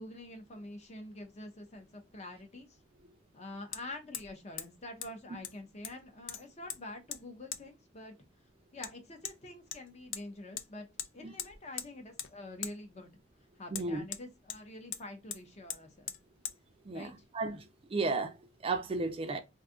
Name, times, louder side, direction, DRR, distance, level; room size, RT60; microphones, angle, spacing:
voice 1, 0.0-2.7 3.3-8.1 8.7-10.9 11.1-13.1 13.6-16.1 16.9-17.3, left 1 dB, 35° left, 0.7 m, -46 dB
Hammer, 1.8-1.9 3.7-3.8 4.1-4.3 4.6-4.7 5.0-5.1 5.4-6.0 6.3-6.8 7.1-7.2 7.5-7.6 8.8-8.9 9.3-9.4 9.7-10.2 10.6-10.7 11.0-11.1 11.4-11.9 12.2-12.3 12.6-12.8 13.7-14.6 14.9-15.0 15.3-15.4 15.7-15.8 16.1-16.2 16.5-16.6, left 9 dB, 85° left, 0.4 m, -40 dB
voice 2, 13.7-14.0 16.9-17.1 17.3-17.6 17.9-18.3 18.6-19.4, right 3 dB, 30° right, 0.4 m, -33 dB
2.6 x 2.3 x 3.6 m
head